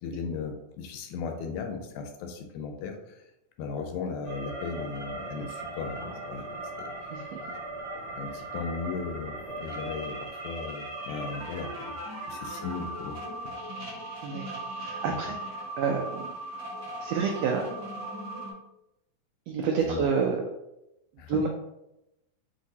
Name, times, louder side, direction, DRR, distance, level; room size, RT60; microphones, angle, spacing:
voice 1, 0.0-3.0 3.6-6.5 6.8-6.9 8.2-11.7 12.3-13.5 19.8-20.1 21.2-21.4, left 5 dB, 80° left, 5 dB, 1.8 m, -36 dB
sound 1, 4.2-18.5, right 1 dB, 55° right, 0.5 m, -38 dB
sound 2, 4.7-10.3, equal, 60° left, 0.5 m, -49 dB
voice 2, 14.2-16.3 17.0-17.7 19.5-20.4 21.3-21.5, right 5 dB, 85° right, 1 dB, 1.4 m, -29 dB
5.8 x 2.9 x 2.7 m, 0.88 s
omnidirectional pair, 3.5 m